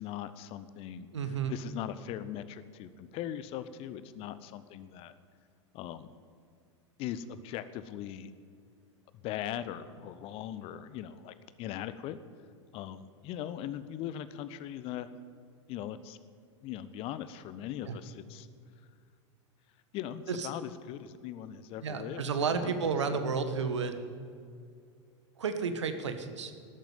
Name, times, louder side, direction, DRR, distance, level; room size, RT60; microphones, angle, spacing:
voice 1, 0.0-1.1 1.5-5.1 5.7-6.1 7.0-8.3 9.2-12.2 12.7-15.1 15.7-16.2 16.6-18.5 19.9-22.2 22.5-23.4, left 11 dB, 40° left, 14 dB, 0.8 m, -40 dB
voice 2, 1.1-1.6 17.8-18.0 20.3-20.5 21.8-24.0 25.4-26.5, right 5 dB, 70° right, 9 dB, 1.4 m, -32 dB
13.0 x 9.2 x 9.3 m, 2.3 s
figure-of-eight pair, 90°, 16 cm